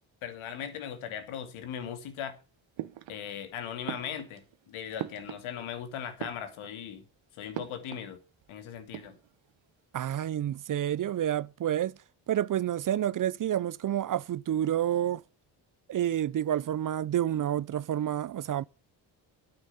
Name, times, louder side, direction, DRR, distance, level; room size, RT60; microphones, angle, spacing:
voice 1, 0.2-2.3 3.1-7.0 7.4-8.2 8.5-9.2, left 8 dB, 85° left, 2.6 m, -38 dB
sound 1, 2.8-3.5 3.9-5.8 6.1-6.9 7.5-8.2 8.4-8.5 8.8-9.5, right 13 dB, 70° right, 1.2 m, -41 dB
voice 2, 9.9-11.9 12.3-15.2 15.9-18.6, right 11 dB, 45° right, 0.5 m, -29 dB
9.5 x 8.7 x 7.9 m
supercardioid pair, 70°, 47 cm